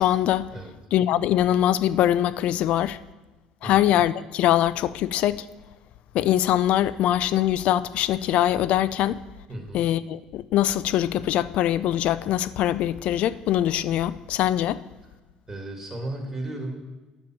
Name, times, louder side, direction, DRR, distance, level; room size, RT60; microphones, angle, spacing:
voice 1, 0.0-0.5 0.9-3.0 3.6-5.5 6.1-9.2 9.7-14.8, left 12 dB, 65° left, 0.4 m, -23 dB
voice 2, 9.5-9.8 15.5-16.8, right 1 dB, 20° right, 2.8 m, -34 dB
10.5 x 7.1 x 6.1 m
supercardioid pair, 100°, 2 cm